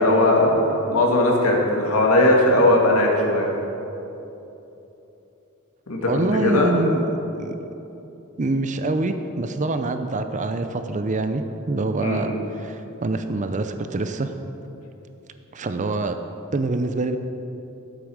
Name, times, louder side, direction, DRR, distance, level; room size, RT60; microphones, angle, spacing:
voice 1, 0.0-3.5 5.9-6.7 12.0-12.2, left 1 dB, 80° left, -1 dB, 2.2 m, -19 dB
voice 2, 6.1-7.5 8.4-14.3 15.5-16.2 16.5-17.2, right 2 dB, 35° right, 8 dB, 0.5 m, -25 dB
12.5 x 8.2 x 6.4 m, 3.0 s
head